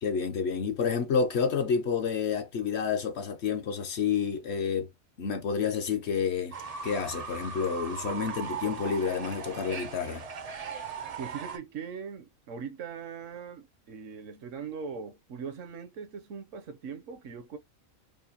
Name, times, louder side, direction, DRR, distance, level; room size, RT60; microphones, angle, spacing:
voice 1, 0.0-4.9 5.2-6.6 6.8-10.2, left 6 dB, 60° left, 0.8 m, -29 dB
Fowl / Bird, 6.5-11.6, right 6 dB, 55° right, 0.4 m, -38 dB
voice 2, 11.2-17.6, right 6 dB, 70° right, 1.0 m, -40 dB
4.8 x 2.1 x 2.8 m
omnidirectional pair, 1.4 m